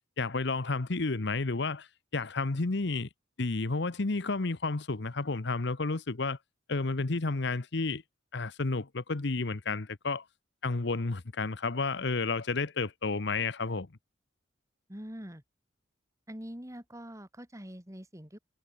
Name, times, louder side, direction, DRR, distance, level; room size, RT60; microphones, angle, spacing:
voice 1, 0.2-1.9 2.1-3.1 3.4-6.4 6.7-8.0 8.3-10.2 10.6-13.9, left 3 dB, 65° left, 1.0 m, -31 dB
voice 2, 14.9-15.4 16.3-18.4, equal, 15° right, 3.6 m, -44 dB
head